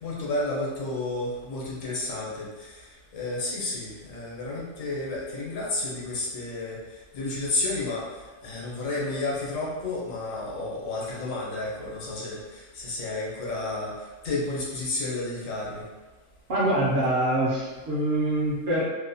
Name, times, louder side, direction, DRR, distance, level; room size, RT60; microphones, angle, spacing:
voice 1, 0.0-2.9 3.1-6.8 7.1-8.0 8.4-13.9 14.2-15.8, left 2 dB, 85° left, -4 dB, 1.1 m, -31 dB
voice 2, 16.5-18.8, right 1 dB, 55° right, -5 dB, 0.6 m, -24 dB
2.7 x 2.1 x 2.6 m, 1.3 s
omnidirectional pair, 1.3 m